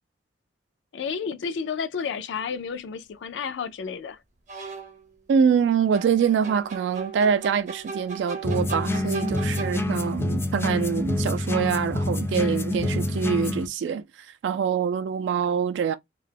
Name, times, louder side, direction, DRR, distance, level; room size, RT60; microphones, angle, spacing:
voice 1, 0.9-4.2, left 6 dB, 85° left, 0.4 m, -31 dB
sound 1, 2.4-2.5 4.5-5.1 5.9-10.2, right 5 dB, 45° right, 0.6 m, -38 dB
voice 2, 5.3-16.0, right 7 dB, 80° right, 0.3 m, -25 dB
sound 2, 8.4-13.7, left 2 dB, 15° left, 0.3 m, -27 dB
2.3 x 2.0 x 3.2 m
head